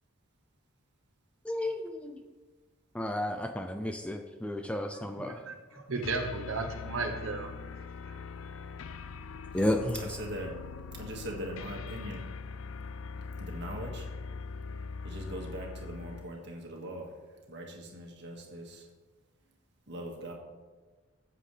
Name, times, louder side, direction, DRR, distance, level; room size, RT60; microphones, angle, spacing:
voice 1, 1.4-2.2 2.9-5.4 9.5-10.0, left 1 dB, 5° left, 5 dB, 0.4 m, -32 dB
voice 2, 4.9-5.5 5.9-7.5, right 3 dB, 70° right, 5 dB, 1.0 m, -34 dB
sound 1, 6.0-16.4, left 4 dB, 75° left, 0.4 m, -42 dB
voice 3, 10.0-10.6 10.9-12.3 13.4-14.1 15.0-18.9 19.9-20.3, right 1 dB, 55° right, 0 dB, 1.8 m, -41 dB
14.5 x 7.7 x 3.3 m, 1.3 s
head